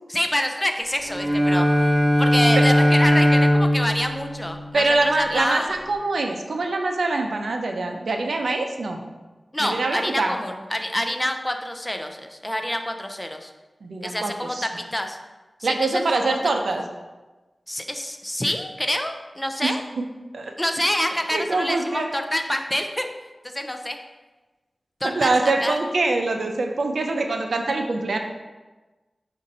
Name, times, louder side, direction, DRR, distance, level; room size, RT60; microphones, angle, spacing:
voice 1, 0.1-5.7 9.5-13.5 14.0-15.2 15.6-16.4 17.7-19.8 20.6-23.1 23.5-24.0 25.0-25.8, left 1 dB, 15° left, 5 dB, 0.4 m, -27 dB
Bowed string instrument, 1.1-5.2, equal, 40° right, 1.0 m, -19 dB
voice 2, 4.7-9.0 9.6-10.3 13.8-14.6 15.6-16.8 19.6-19.8 20.3-20.5 21.3-22.1 25.2-28.2, right 3 dB, 85° right, 4 dB, 0.4 m, -24 dB
5.1 x 2.5 x 4.1 m, 1.2 s
cardioid pair, 50°, 0 cm